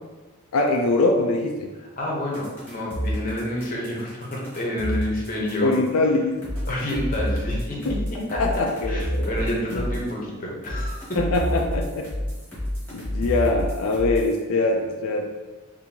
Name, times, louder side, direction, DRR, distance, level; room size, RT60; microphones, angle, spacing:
voice 1, 0.5-1.7 5.6-6.4 7.9-8.0 8.4-9.3 9.7-9.9 11.2-12.1 12.9-15.3, left 2 dB, 85° left, 2 dB, 0.4 m, -23 dB
voice 2, 2.0-5.8 6.6-7.8 8.3-8.4 8.9-11.2, left 1 dB, 40° left, -3 dB, 0.8 m, -28 dB
sound 1, 2.3-5.9 6.4-10.1 10.6-14.4, equal, 10° left, 1.4 m, -29 dB
4.2 x 2.7 x 2.7 m, 1.2 s
head